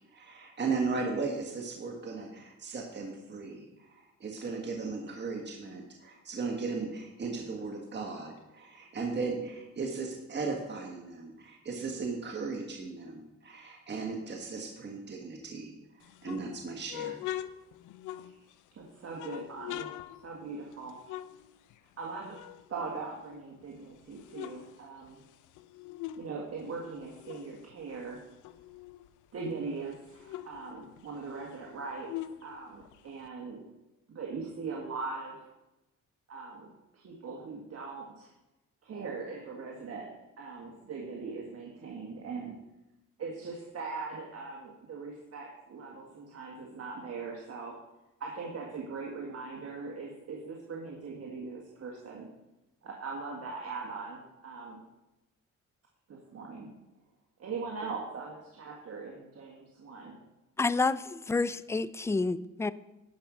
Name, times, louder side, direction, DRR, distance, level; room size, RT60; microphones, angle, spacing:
voice 1, 0.1-17.2, right 4 dB, 35° right, 1.6 m, -36 dB
sound 1, 16.0-18.7 19.1-22.0 22.3-23.6 24.0-26.3 26.6-29.1 29.5-29.6 29.8-33.3, left 13 dB, 90° left, 0.5 m, -43 dB
voice 2, 18.8-19.9 20.2-21.0 22.0-22.4 22.7-25.2 26.2-28.2 29.3-32.1 32.4-33.6 34.1-35.4 36.3-38.3 38.8-40.1 40.4-42.6 43.2-47.8 48.2-52.3 52.8-54.8 56.1-56.7 57.4-60.2, right 4 dB, 55° right, 1.7 m, -40 dB
voice 3, 60.6-62.7, left 3 dB, 10° left, 0.3 m, -29 dB
11.5 x 5.3 x 6.2 m
cardioid pair, 90°, 30 cm